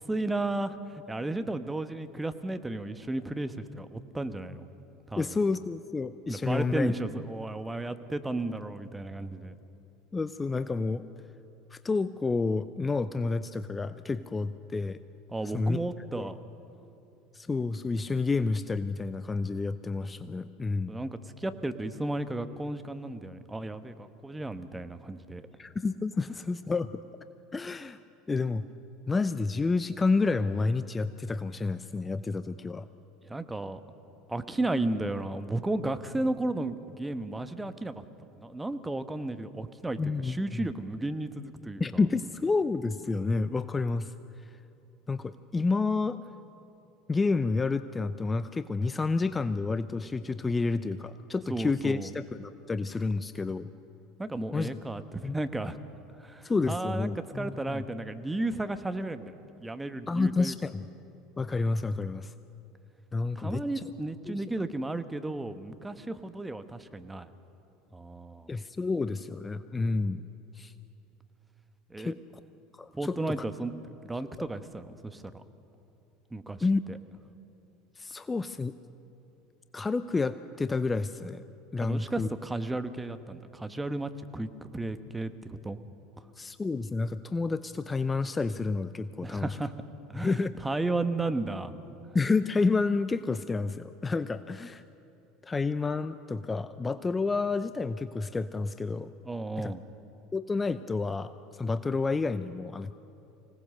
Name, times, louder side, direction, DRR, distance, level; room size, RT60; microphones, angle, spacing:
voice 1, 0.1-4.7 5.1-5.4 6.3-9.6 15.3-16.4 20.9-25.5 33.2-33.8 34.3-38.0 38.4-41.8 51.5-52.1 54.2-55.8 56.2-60.5 63.3-67.3 67.9-68.5 71.9-72.1 72.9-73.7 74.0-75.4 76.3-76.6 76.9-77.0 81.8-85.8 89.2-89.7 90.1-91.7 99.2-99.8, right 2 dB, 10° right, 10 dB, 1.2 m, -34 dB
voice 2, 5.2-6.9 10.1-11.0 11.7-15.0 15.5-15.8 16.1-16.3 17.3-21.0 25.6-26.9 27.5-28.0 28.3-28.6 29.1-32.9 40.0-40.7 41.8-44.1 45.1-46.2 47.1-53.7 54.5-54.7 55.2-55.4 56.4-57.8 60.1-60.9 61.4-62.3 63.1-63.6 64.3-64.4 68.5-70.2 70.5-70.7 72.0-72.2 72.8-73.2 74.4-74.5 76.6-76.8 78.0-78.7 79.7-81.4 81.7-82.3 86.4-89.5 90.2-90.5 92.1-94.8 95.4-99.1 99.6-99.7 100.3-102.9, left 3 dB, 20° left, 13 dB, 0.6 m, -29 dB
25.5 x 18.0 x 6.7 m, 2.9 s
hypercardioid pair, 75°, 0 cm